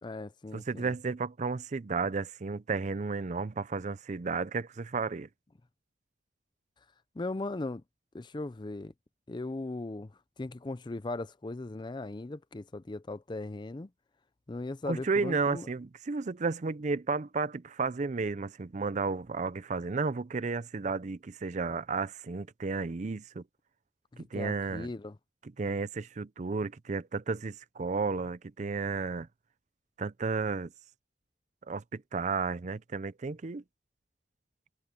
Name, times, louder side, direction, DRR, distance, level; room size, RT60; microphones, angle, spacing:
voice 1, 0.0-0.9 7.2-7.8 8.1-8.9 9.3-10.1 10.4-13.9 14.5-15.7 24.1-25.2, left 2 dB, 25° left, 0.5 m, -38 dB
voice 2, 0.5-5.3 14.9-23.4 24.2-24.9 25.6-29.3 30.0-30.7 31.7-33.6, right 4 dB, 45° right, 0.5 m, -33 dB
head